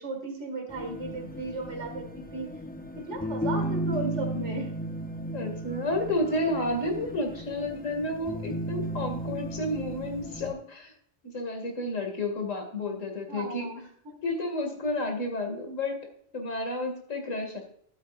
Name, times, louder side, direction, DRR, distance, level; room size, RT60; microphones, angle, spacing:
voice 1, 0.0-2.5 3.0-4.7 13.3-14.2, right 2 dB, 65° right, 4 dB, 2.4 m, -35 dB
sound 1, 0.7-10.5, right 1 dB, 15° left, 0.4 m, -35 dB
voice 2, 5.3-10.9 11.2-13.7 14.2-16.0 16.3-17.6, left 1 dB, 90° left, 3 dB, 2.6 m, -31 dB
12.5 x 8.6 x 2.5 m, 0.63 s
omnidirectional pair, 1.3 m